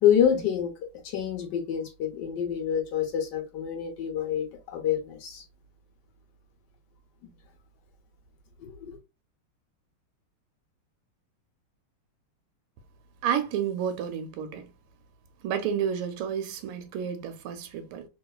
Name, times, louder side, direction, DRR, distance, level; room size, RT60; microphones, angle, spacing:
voice 1, 0.0-0.7 1.0-5.4 8.6-9.0, left 9 dB, 60° left, 1.3 m, -27 dB
voice 2, 13.2-14.7 15.4-18.1, right 8 dB, 90° right, 1.5 m, -30 dB
3.3 x 3.0 x 2.3 m
omnidirectional pair, 2.3 m